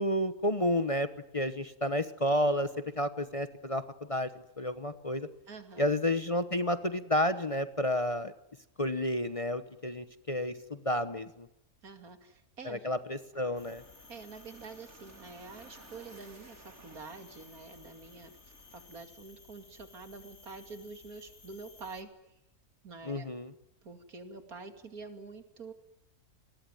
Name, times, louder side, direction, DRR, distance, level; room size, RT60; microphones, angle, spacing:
voice 1, 0.0-2.7 3.0-4.3 4.6-5.3 5.8-8.3 8.8-11.5 12.6-13.8 23.0-23.5, left 1 dB, 25° left, 10 dB, 1.1 m, -31 dB
voice 2, 5.5-5.8 11.8-12.9 14.1-18.4 18.7-22.1 22.8-23.3 23.8-25.7, right 4 dB, 80° right, 8 dB, 3.0 m, -47 dB
sound 1, 13.3-19.0, right 3 dB, 50° right, 3.1 m, -57 dB
sound 2, 13.6-22.0, left 4 dB, 60° left, 2.6 m, -57 dB
27.5 x 21.0 x 9.3 m, 0.84 s
omnidirectional pair, 1.5 m